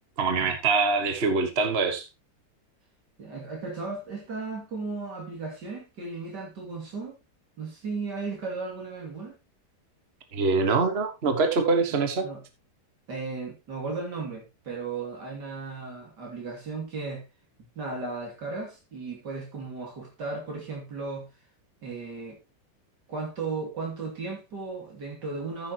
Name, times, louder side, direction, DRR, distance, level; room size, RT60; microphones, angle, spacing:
voice 1, 0.2-2.1 10.3-12.3, right 4 dB, 40° right, 1.6 m, -24 dB
voice 2, 3.2-7.1 7.6-9.4 11.9-12.4 13.1-17.2 17.8-21.3 21.8-22.4 23.1-25.7, right 4 dB, 90° right, 3.4 m, -35 dB
14.0 x 7.5 x 3.0 m
omnidirectional pair, 1.8 m